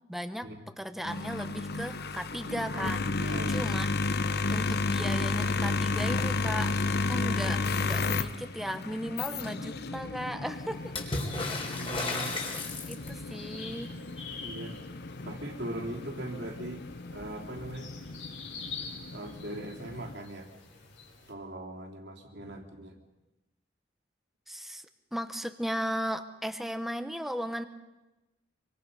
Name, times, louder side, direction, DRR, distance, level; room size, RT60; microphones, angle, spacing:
voice 1, 0.1-0.5 0.8-3.9 4.5-6.7 7.1-10.9 12.9-13.9 24.5-24.9 25.1-27.7, equal, ahead, 8 dB, 1.0 m, -36 dB
sound 1, 1.0-20.1, left 3 dB, 60° left, 1.0 m, -33 dB
voice 2, 3.2-3.6 11.6-12.4 14.4-14.8 15.2-16.9 17.1-17.9 19.1-20.5 21.3-23.0, right 1 dB, 65° right, 1 dB, 3.2 m, -40 dB
sound 2, 10.5-21.3, left 5 dB, 80° left, 6.1 m, -47 dB
Water / Splash splatter, 10.9-13.3 16.6-16.7 17.0-17.7 18.8-18.9, left 2 dB, 30° left, 4.2 m, -34 dB
25.5 x 24.5 x 5.5 m, 1.1 s
head